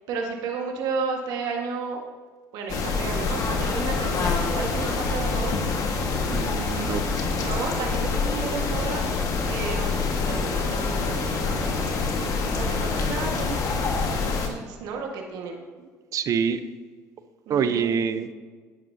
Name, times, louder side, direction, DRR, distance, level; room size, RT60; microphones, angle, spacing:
voice 1, 0.1-2.0 2.5-5.6 7.3-9.1 9.5-11.9 12.5-13.6 14.3-15.6 17.4-18.0, right 4 dB, 80° right, 1 dB, 1.7 m, -33 dB
sound 1, 2.7-14.5, left 4 dB, 55° left, 1.7 m, -26 dB
voice 2, 6.3-7.0 16.1-16.6 17.5-18.3, right 7 dB, 55° right, 11 dB, 0.8 m, -25 dB
11.0 x 9.8 x 2.8 m, 1.5 s
supercardioid pair, 90°, 7 cm